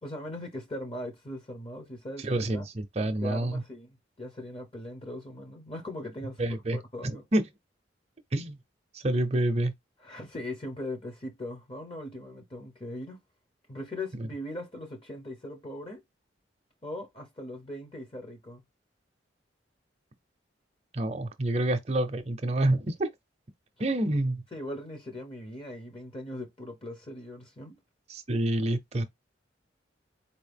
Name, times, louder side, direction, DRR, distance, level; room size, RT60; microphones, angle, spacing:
voice 1, 0.0-2.7 3.2-7.2 10.0-13.2 13.7-16.0 16.8-18.6 24.5-27.7, left 1 dB, 30° left, 0.9 m, -40 dB
voice 2, 2.2-3.6 6.4-6.8 7.0-7.5 8.3-8.6 8.9-9.7 14.1-14.3 20.9-23.1 23.8-24.4 28.1-29.0, right 1 dB, 35° right, 0.6 m, -28 dB
4.3 x 2.8 x 3.5 m
head